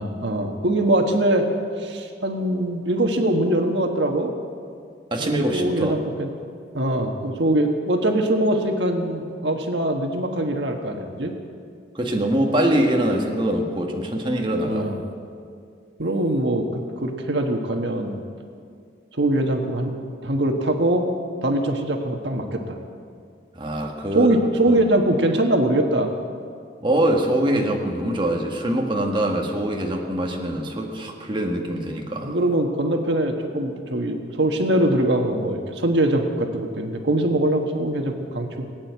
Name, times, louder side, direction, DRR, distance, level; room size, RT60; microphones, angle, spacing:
voice 1, 0.0-1.4 1.8-4.3 5.2-6.3 6.7-11.3 14.7-15.0 16.0-18.2 19.2-19.9 20.2-21.1 21.4-22.8 24.1-26.1 31.4-31.5 32.2-38.6, right 1 dB, 85° right, 4 dB, 1.4 m, -22 dB
voice 2, 5.1-5.9 11.9-14.8 23.5-24.3 24.7-24.8 26.8-32.3, right 1 dB, 30° right, 1 dB, 1.6 m, -23 dB
19.0 x 9.2 x 8.1 m, 2.3 s
head